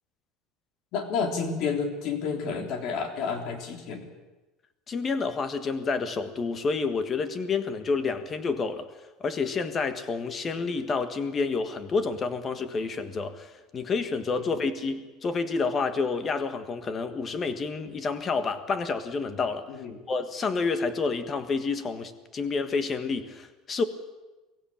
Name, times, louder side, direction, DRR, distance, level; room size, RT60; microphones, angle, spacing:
voice 1, 0.9-4.1 19.7-20.0, left 5 dB, 50° left, 4 dB, 3.4 m, -30 dB
voice 2, 4.9-8.9 9.2-19.7 20.1-23.8, left 4 dB, 25° left, 10 dB, 1.6 m, -29 dB
23.5 x 15.5 x 8.8 m, 1.1 s
cardioid pair, 160°, 0 cm